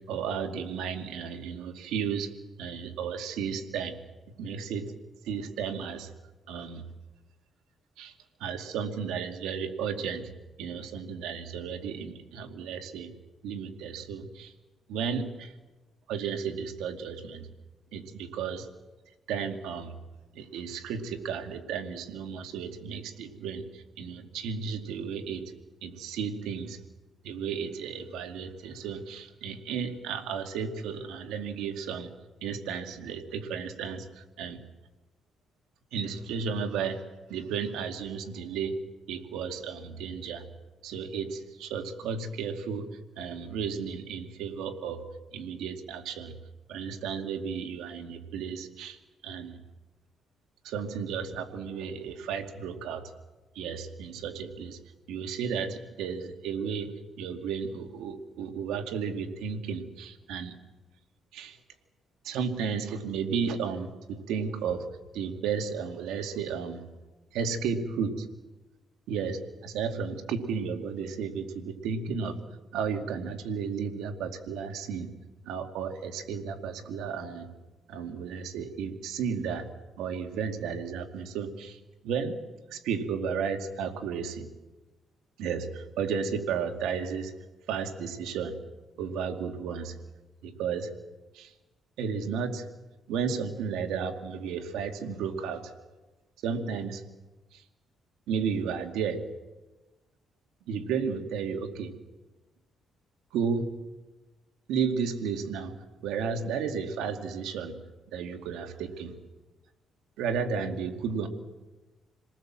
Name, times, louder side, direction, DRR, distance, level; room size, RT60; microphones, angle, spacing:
voice 1, 0.0-2.3 2.6-4.0 4.4-4.9 5.2-6.1 6.5-6.8 8.0-8.1 8.4-10.3 10.6-13.1 13.4-14.5 14.9-15.5 16.1-17.5 17.9-18.7 19.3-20.0 20.3-25.5 25.8-26.8 27.2-32.1 32.4-34.6 35.9-37.0 37.3-38.8 39.1-40.5 40.8-42.9 43.2-45.1 45.3-46.3 46.7-49.6 50.6-53.1 53.5-54.8 55.1-56.9 57.2-60.5 61.3-61.6 62.2-64.9 65.1-66.8 67.3-68.3 69.1-72.4 72.7-75.1 75.4-77.5 77.9-79.7 80.0-82.4 82.7-84.5 85.4-87.3 87.7-88.6 89.0-90.0 90.4-90.9 91.3-91.5 92.0-92.7 93.1-95.7 96.4-97.0 97.5-97.6 98.3-99.2 100.7-101.9 103.3-103.7 104.7-105.7 106.0-107.7 108.1-109.1 110.2-111.3, right 6 dB, 90° right, 5 dB, 2.4 m, -33 dB
28.5 x 19.0 x 7.5 m, 1.1 s
cardioid pair, 90°, 0 cm